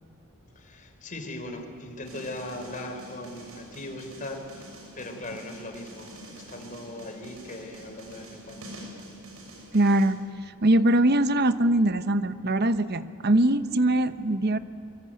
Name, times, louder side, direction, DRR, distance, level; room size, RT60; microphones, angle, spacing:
voice 1, 0.6-8.7, left 1 dB, 35° left, 4 dB, 4.2 m, -39 dB
sound 1, 2.0-10.1, right 1 dB, 75° right, 6.6 m, -46 dB
voice 2, 9.7-10.2 10.6-14.6, right 1 dB, 50° right, 12 dB, 1.0 m, -22 dB
24.5 x 24.0 x 9.3 m, 2.6 s
head